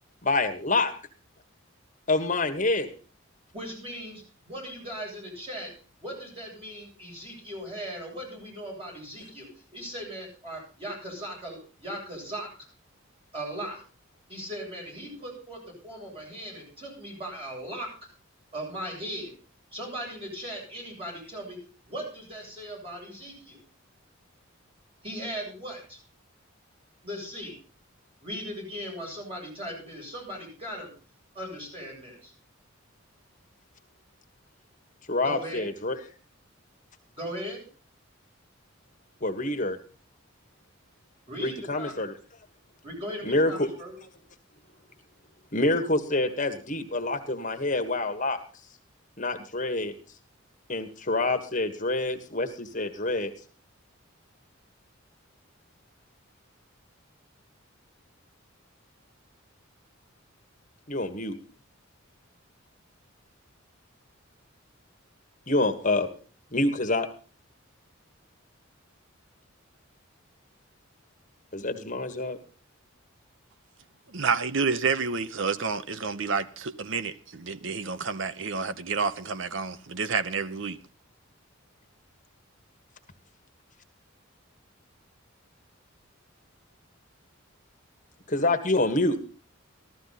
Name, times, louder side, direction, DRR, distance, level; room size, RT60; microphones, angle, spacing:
voice 1, 0.2-0.9 2.1-2.9 35.1-36.0 39.2-39.8 41.4-42.1 43.2-43.7 45.5-48.4 49.2-49.9 50.7-53.3 60.9-61.4 65.5-66.1 66.5-67.1 71.5-72.4 88.3-89.2, left 2 dB, 40° left, 1.6 m, -26 dB
voice 2, 3.5-5.7 6.0-12.5 13.3-13.8 14.3-17.9 18.5-19.3 19.7-21.6 21.8-23.6 25.0-26.0 27.0-27.5 28.2-30.9 31.3-32.3 35.2-35.7 37.2-37.6 41.3-42.0 42.8-44.0, equal, 25° right, 7.9 m, -38 dB
voice 3, 74.1-80.8, right 5 dB, 65° right, 0.9 m, -29 dB
14.5 x 13.5 x 4.1 m
head